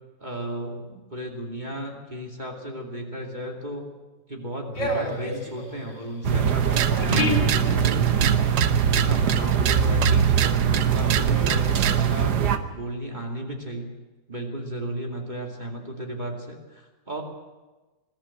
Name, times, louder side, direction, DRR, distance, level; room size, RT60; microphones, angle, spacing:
voice 1, 0.2-3.8 4.3-12.4 12.7-13.9 14.3-17.2, right 1 dB, 25° right, 1 dB, 2.6 m, -35 dB
sound 1, 4.7-8.8 9.0-10.7 11.1-12.0, equal, 75° left, 4.0 m, -30 dB
sound 2, 6.2-12.6, right 7 dB, 70° right, 1.6 m, -22 dB
sound 3, 6.6-12.1, right 9 dB, 85° right, 1.5 m, -28 dB
21.5 x 13.5 x 8.9 m, 1.2 s
omnidirectional pair, 1.9 m